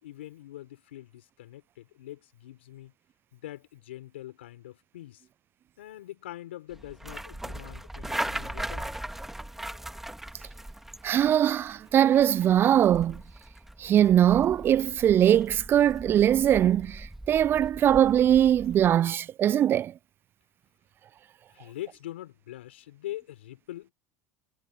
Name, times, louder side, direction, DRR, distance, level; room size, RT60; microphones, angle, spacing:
voice 1, 0.0-2.9 3.3-5.2 5.8-8.9 21.5-23.9, left 14 dB, 90° left, 5.4 m, -43 dB
sound 1, 6.7-19.0, right 1 dB, 5° right, 2.1 m, -39 dB
voice 2, 11.0-13.2 13.8-19.9, right 10 dB, 40° right, 0.4 m, -21 dB
supercardioid pair, 95°, 6 cm